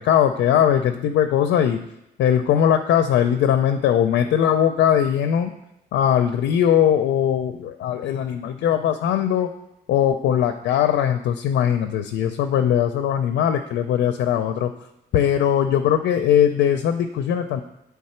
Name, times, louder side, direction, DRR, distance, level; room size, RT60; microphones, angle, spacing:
voice 1, 0.0-1.8 2.2-5.5 5.9-9.5 9.9-14.7 15.1-17.6, left 9 dB, 80° left, 7 dB, 0.4 m, -20 dB
8.6 x 3.5 x 4.3 m, 0.84 s
cardioid pair, 150°, 18 cm